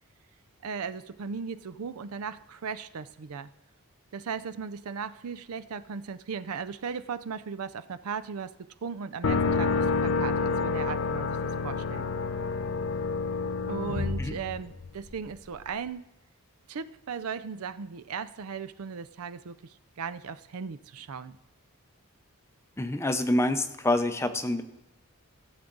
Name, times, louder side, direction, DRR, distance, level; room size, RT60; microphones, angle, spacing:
voice 1, 0.6-3.5 4.1-8.5 8.8-11.4 11.6-12.1 13.7-16.0 16.7-21.4, right 6 dB, 80° right, 14 dB, 0.5 m, -37 dB
sound 1, 9.2-15.1, left 4 dB, 60° left, 0.5 m, -28 dB
voice 2, 22.8-24.6, left 1 dB, 10° left, 9 dB, 0.5 m, -26 dB
16.0 x 7.2 x 3.9 m, 1.0 s
head